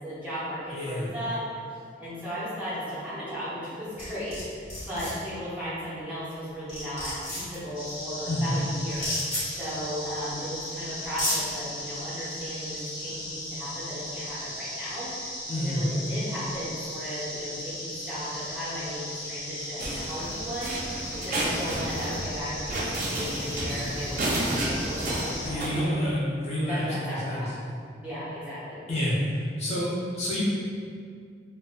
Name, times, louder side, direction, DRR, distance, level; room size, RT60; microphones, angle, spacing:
voice 1, 0.0-26.1 26.6-27.5 28.0-28.8, equal, 10° right, -12 dB, 0.6 m, -36 dB
voice 2, 0.7-1.1 8.3-8.5 15.5-15.9 23.7-23.8 25.4-27.5 28.9-30.4, equal, 35° left, -8 dB, 0.6 m, -28 dB
sound 1, 4.0-4.4 4.7-5.1 6.3-6.4 6.7-7.6 8.9-9.4 10.5-10.6 11.0-11.4, left 1 dB, 50° left, 1.3 m, -30 dB
sound 2, 7.7-25.5, left 1 dB, 85° left, 0.8 m, -37 dB
sound 3, 19.8-25.9, right 1 dB, 45° right, 0.3 m, -31 dB
2.4 x 2.1 x 2.4 m, 2.3 s
head